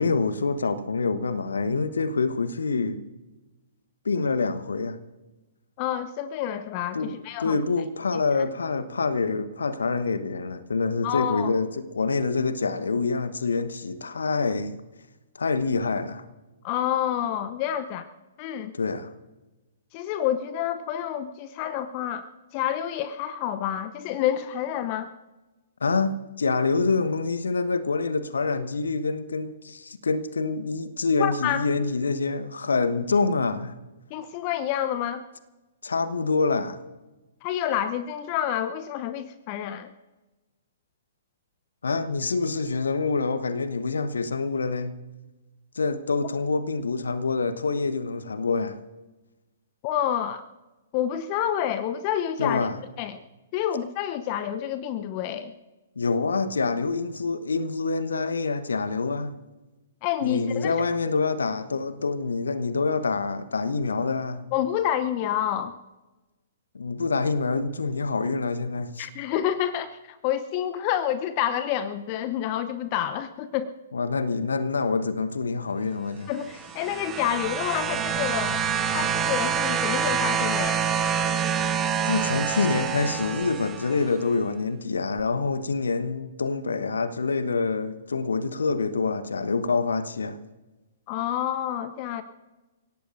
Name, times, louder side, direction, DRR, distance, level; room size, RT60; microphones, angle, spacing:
voice 1, 0.0-3.0 4.0-5.0 6.9-7.1 7.4-14.8 15.4-16.2 18.7-19.1 25.8-33.8 35.8-36.8 41.8-45.0 45.7-48.8 52.4-52.8 56.0-59.3 60.2-64.5 66.7-69.1 73.9-76.3 82.1-90.4, left 4 dB, 65° left, 1.2 m, -26 dB
voice 2, 5.8-7.6 11.0-11.5 16.6-18.1 18.4-18.7 19.9-25.1 31.2-31.6 34.1-35.2 37.4-39.9 49.8-50.4 50.9-52.7 53.0-53.2 53.5-55.5 60.0-60.9 64.5-65.8 69.0-73.7 76.3-78.6 78.9-80.8 91.1-92.2, left 10 dB, 35° left, 0.7 m, -28 dB
sound 1, 76.4-84.1 85.2-85.3, right 7 dB, 20° right, 1.4 m, -27 dB
30.0 x 17.5 x 2.6 m
figure-of-eight pair, 115°, 0 cm